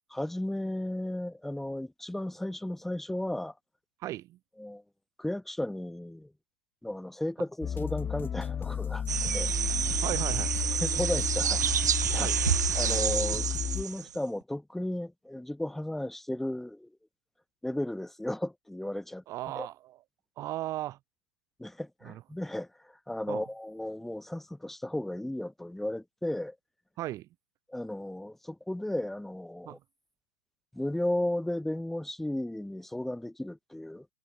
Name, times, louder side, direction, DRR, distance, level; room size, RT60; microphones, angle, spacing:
voice 1, 0.1-3.5 4.6-4.8 5.2-6.3 6.8-9.5 9.8-10.0 10.7-11.6 12.1-12.3 12.7-16.9 17.6-19.2 19.6-19.7 21.6-26.6 27.7-29.8 30.7-34.1, left 1 dB, 5° left, 1.1 m, -34 dB
voice 2, 4.0-4.4 10.0-10.6 12.2-12.4 19.3-20.0 20.4-21.0 22.0-22.2 23.3-23.4 27.0-27.3 29.6-29.8, right 15 dB, 35° right, 4.5 m, -36 dB
sound 1, 7.6-13.8, left 8 dB, 20° left, 1.4 m, -33 dB
sound 2, 9.1-14.2, right 9 dB, 85° right, 1.6 m, -29 dB
hypercardioid pair, 115°, 9 cm